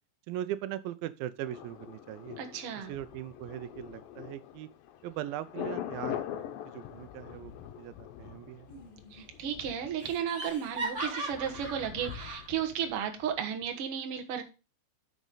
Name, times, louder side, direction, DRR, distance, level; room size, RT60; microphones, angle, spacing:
voice 1, 0.3-2.4 2.8-4.7 5.0-7.5 7.8-8.7, right 12 dB, 85° right, 14 dB, 2.3 m, -39 dB
Thunder, 1.5-13.3 13.6-13.7, left 11 dB, 75° left, 2.5 m, -43 dB
voice 2, 2.4-2.9 9.1-14.4, right 8 dB, 55° right, 5 dB, 1.8 m, -34 dB
Laughter, 8.7-9.2 9.5-9.6 10.0-12.5, right 1 dB, 30° right, 4.4 m, -39 dB
9.4 x 6.2 x 3.9 m, 0.31 s
omnidirectional pair, 4.2 m